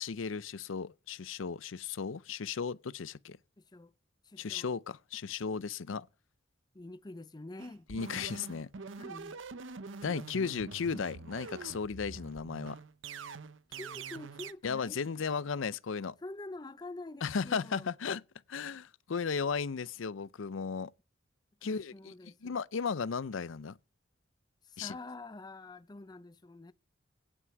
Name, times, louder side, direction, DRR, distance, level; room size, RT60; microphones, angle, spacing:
voice 1, 0.0-3.4 4.4-6.1 7.9-8.7 10.0-12.8 14.6-16.1 17.2-18.2 18.5-20.9 21.6-22.1 22.4-23.8 24.8-24.9, left 5 dB, 90° left, 0.5 m, -35 dB
voice 2, 3.6-3.9 4.2-4.7 6.7-7.9 9.0-9.4 10.1-10.4 13.7-15.0 16.2-17.9 21.6-22.5 24.6-26.7, left 2 dB, 20° left, 0.5 m, -47 dB
sound 1, 7.6-14.5, right 4 dB, 80° right, 0.7 m, -45 dB
17.0 x 6.1 x 4.6 m
head